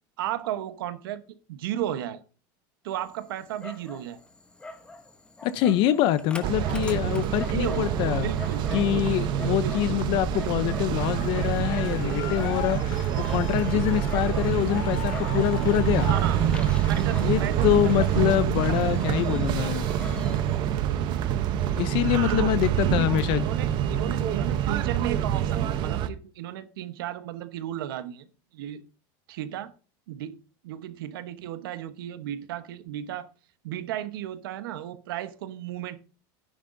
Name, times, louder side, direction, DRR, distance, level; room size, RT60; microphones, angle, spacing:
voice 1, 0.2-1.2 1.5-2.2 2.8-4.2 7.4-7.9 8.2-9.0 9.5-10.0 16.0-16.4 16.9-18.6 18.8-19.2 20.4-20.6 20.9-21.2 22.2-22.5 23.0-28.3 28.5-28.8 29.3-29.7 30.1-30.4 30.6-33.3 33.6-36.0, right 12 dB, 85° right, 1.1 m, -34 dB
Dog, 2.9-20.6, left 3 dB, 10° left, 1.0 m, -44 dB
voice 2, 5.4-8.3 8.7-16.1 17.2-19.9 21.8-23.5, left 13 dB, 50° left, 0.6 m, -25 dB
sound 1, 6.4-26.1, right 10 dB, 40° right, 0.8 m, -26 dB
sound 2, 11.0-18.5, left 10 dB, 80° left, 2.3 m, -39 dB
11.5 x 10.0 x 2.6 m
supercardioid pair, 150°, 11 cm